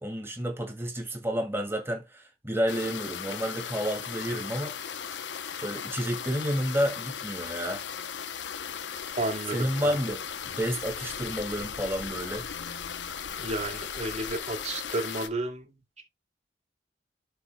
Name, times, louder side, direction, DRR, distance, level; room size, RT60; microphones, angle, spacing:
voice 1, 0.0-4.7 5.6-7.8 9.5-12.5, equal, 15° right, 2.3 m, -30 dB
sound 1, 2.7-15.3, left 7 dB, 90° left, 0.8 m, -37 dB
voice 2, 9.2-9.9 13.3-16.0, right 2 dB, 40° right, 2.6 m, -32 dB
12.0 x 5.7 x 2.2 m
head